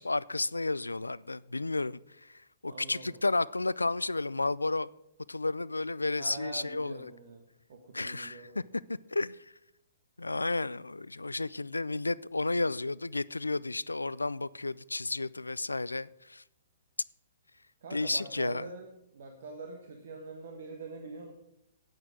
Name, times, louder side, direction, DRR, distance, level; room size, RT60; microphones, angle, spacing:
voice 1, 0.0-4.9 5.3-7.1 7.9-8.5 9.1-9.4 10.2-16.4 17.9-18.7, left 2 dB, 90° left, 0.3 m, -32 dB
voice 2, 2.7-3.2 6.2-7.4 7.7-8.7 17.8-21.3, right 4 dB, 60° right, 1.4 m, -44 dB
8.9 x 8.9 x 6.3 m
figure-of-eight pair, 120°, 0 cm